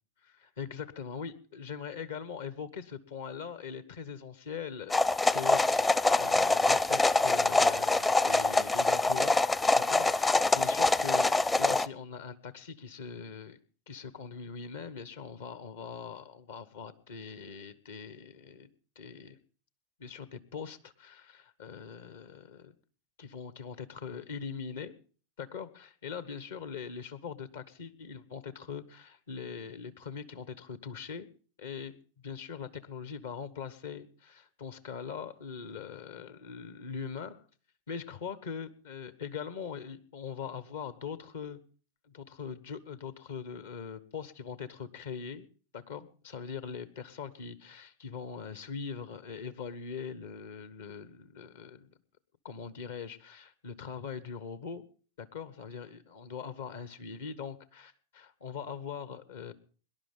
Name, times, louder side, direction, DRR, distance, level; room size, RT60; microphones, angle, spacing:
voice 1, 0.2-9.4 9.7-13.6 13.9-18.7 18.9-19.4 20.0-22.7 23.2-24.9 25.4-31.3 31.6-37.4 37.9-41.6 42.0-45.5 45.7-51.9 52.4-54.8 55.2-59.5, left 6 dB, 60° left, 14 dB, 1.2 m, -42 dB
sound 1, 4.9-11.9, left 2 dB, 10° left, 0.6 m, -25 dB
24.0 x 11.0 x 3.7 m, 0.41 s
figure-of-eight pair, 90°, 0 cm